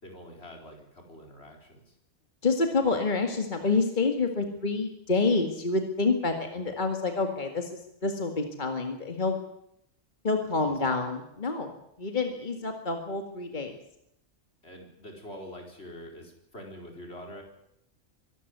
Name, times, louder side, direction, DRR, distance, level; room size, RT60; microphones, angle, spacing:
voice 1, 0.0-1.9 6.5-6.6 10.6-11.0 14.6-17.4, left 1 dB, 55° left, 1 dB, 4.8 m, -45 dB
voice 2, 2.4-9.4 10.2-11.7 12.0-13.7, left 3 dB, 40° left, 4 dB, 2.2 m, -28 dB
24.5 x 13.0 x 9.6 m, 0.79 s
omnidirectional pair, 1.3 m